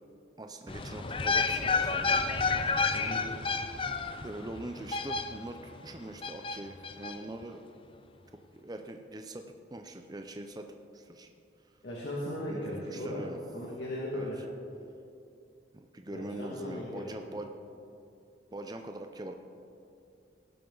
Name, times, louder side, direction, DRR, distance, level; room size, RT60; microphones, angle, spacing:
voice 1, 0.4-2.2 2.7-2.8 4.2-5.6 5.8-7.9 8.5-9.4 9.7-10.7 10.9-11.3 12.5-13.4 14.1-14.3 15.7-17.5 18.5-19.3, right 1 dB, 20° right, 5 dB, 0.6 m, -42 dB
sound 1, 0.7-5.7 6.2-7.2 7.4-7.5, left 4 dB, 30° left, 0.5 m, -30 dB
voice 2, 2.9-3.2 11.8-13.2 13.5-14.4 16.1-17.4, left 1 dB, 75° left, -5 dB, 2.0 m, -37 dB
17.5 x 11.5 x 3.9 m, 2.6 s
head